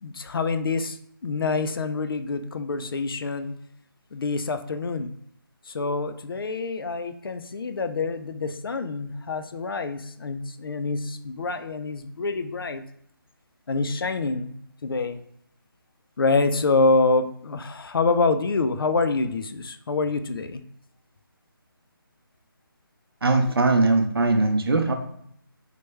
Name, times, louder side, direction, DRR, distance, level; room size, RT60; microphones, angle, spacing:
voice 1, 0.0-1.0 1.2-3.6 4.1-5.1 5.7-12.8 13.7-14.5 14.8-15.2 16.2-20.6, left 3 dB, 70° left, 10 dB, 0.4 m, -26 dB
voice 2, 23.2-24.9, right 3 dB, 85° right, 4 dB, 0.6 m, -20 dB
3.2 x 2.2 x 3.1 m, 0.70 s
figure-of-eight pair, 170°, 12 cm